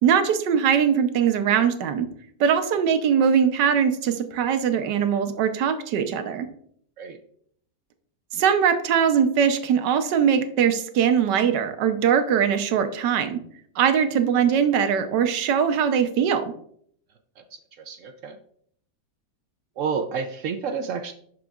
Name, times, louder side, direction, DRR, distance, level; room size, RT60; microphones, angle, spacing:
voice 1, 0.0-2.1 2.4-6.5 8.3-13.4 13.8-16.5, right 7 dB, 85° right, 8 dB, 1.4 m, -21 dB
voice 2, 17.4-18.4 19.8-21.1, right 6 dB, 70° right, 7 dB, 0.7 m, -30 dB
11.0 x 4.7 x 2.4 m, 0.63 s
omnidirectional pair, 1.8 m